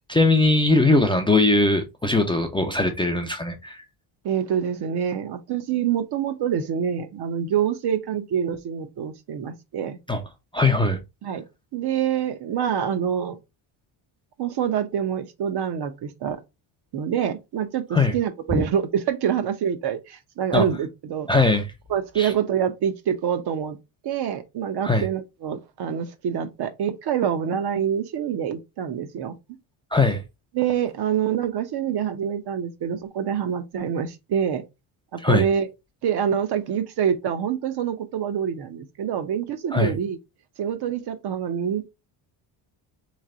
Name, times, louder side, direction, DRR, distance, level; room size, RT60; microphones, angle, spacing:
voice 1, 0.1-3.8 10.1-10.2 10.5-11.0 17.9-18.1 18.5-18.6 20.5-20.7 21.3-21.7 22.2-22.3 24.8-25.1 29.9-30.2 35.2-35.5 39.7-39.9, left 2 dB, 10° left, 0.4 m, -20 dB
voice 2, 4.2-10.0 11.2-11.4 11.7-13.4 14.4-16.4 16.9-21.3 21.9-23.8 24.0-29.4 30.5-34.6 35.1-35.7 36.0-40.2 40.6-41.9, right 8 dB, 55° right, 0.8 m, -26 dB
3.3 x 3.2 x 3.8 m
cardioid pair, 125°, 48 cm